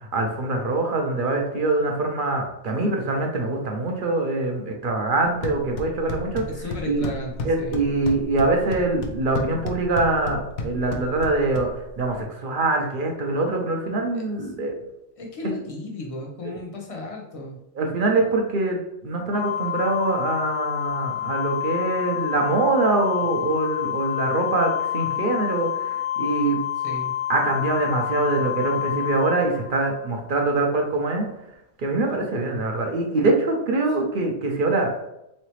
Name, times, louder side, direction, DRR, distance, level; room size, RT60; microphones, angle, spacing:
voice 1, 0.0-6.4 6.9-7.0 7.4-14.7 15.4-15.5 17.8-26.6 27.3-31.3 31.8-35.1, right 2 dB, 55° right, 2 dB, 0.6 m, -24 dB
sound 1, 5.2-12.2, left 2 dB, 85° left, 1.0 m, -34 dB
voice 2, 6.4-7.8 15.2-17.6 26.8-27.1, left 2 dB, 30° left, 0 dB, 0.7 m, -34 dB
Organ, 19.3-30.1, left 11 dB, 65° left, 0.6 m, -28 dB
3.8 x 3.2 x 3.0 m, 0.86 s
omnidirectional pair, 1.4 m